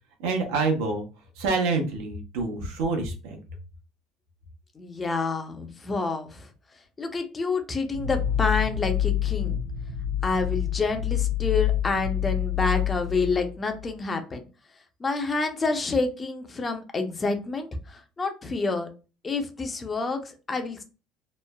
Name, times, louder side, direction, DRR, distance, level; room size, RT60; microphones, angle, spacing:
voice 1, 0.2-1.0 1.4-3.4, right 3 dB, 85° right, 3 dB, 0.7 m, -27 dB
voice 2, 4.8-6.5 7.0-9.6 10.2-14.4 15.0-18.9 19.2-20.8, left 3 dB, 25° left, 6 dB, 0.6 m, -28 dB
sound 1, 7.9-13.9, left 11 dB, 90° left, 0.7 m, -27 dB
3.1 x 2.0 x 2.2 m, 0.32 s
supercardioid pair, 95°, 0 cm